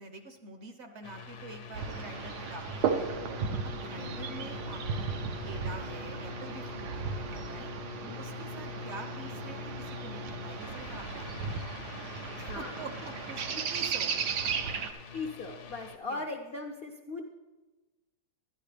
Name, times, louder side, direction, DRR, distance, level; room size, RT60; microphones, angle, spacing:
voice 1, 0.0-3.1 3.6-7.7 8.2-11.7 12.4-14.1 14.4-14.5 16.0-16.2, right 3 dB, 55° right, 6 dB, 0.8 m, -46 dB
sound 1, 1.0-16.0, left 5 dB, 85° left, 1.3 m, -44 dB
sound 2, 1.7-14.9, right 6 dB, 90° right, 1.3 m, -36 dB
voice 2, 4.0-4.6 8.0-8.3 12.5-12.9 15.1-17.2, left 3 dB, 60° left, 3 dB, 0.6 m, -39 dB
11.5 x 10.5 x 3.3 m, 1.2 s
omnidirectional pair, 1.7 m